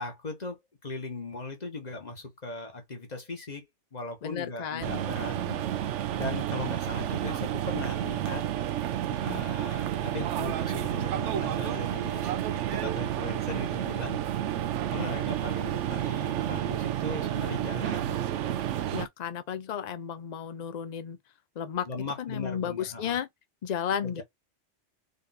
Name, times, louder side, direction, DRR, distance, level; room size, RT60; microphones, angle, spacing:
voice 1, 0.0-5.4 6.1-8.5 9.2-12.4 12.7-14.2 14.9-18.2 21.8-23.2 24.0-24.2, left 3 dB, 35° left, 1.4 m, -38 dB
voice 2, 4.2-5.0 5.3-5.6 9.3-9.4 15.0-15.3 18.9-21.2 21.6-21.9 22.2-23.3 23.6-24.2, left 8 dB, 60° left, 0.4 m, -34 dB
sound 1, 4.8-19.1, right 11 dB, 90° right, 0.9 m, -30 dB
3.9 x 2.7 x 4.0 m
omnidirectional pair, 1.2 m